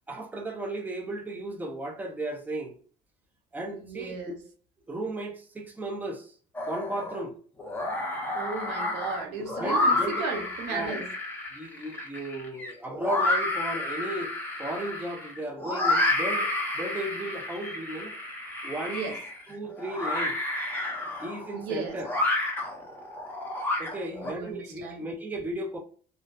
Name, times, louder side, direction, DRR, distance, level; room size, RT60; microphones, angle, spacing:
voice 1, 0.1-2.8 3.5-4.2 4.9-6.4 6.7-7.4 9.6-10.3 10.7-11.0 11.5-14.3 14.6-18.1 18.6-19.1 19.5-20.4 21.2-22.1 23.8-25.8, right 1 dB, 10° right, 0.5 m, -35 dB
voice 2, 3.7-4.4 8.3-11.1 18.9-19.2 21.5-22.0 23.9-25.1, right 4 dB, 90° right, 0.7 m, -35 dB
sound 1, 6.5-7.2 7.6-24.3, left 2 dB, 10° left, 0.8 m, -30 dB
2.4 x 2.3 x 2.2 m
cardioid pair, 110°, 17 cm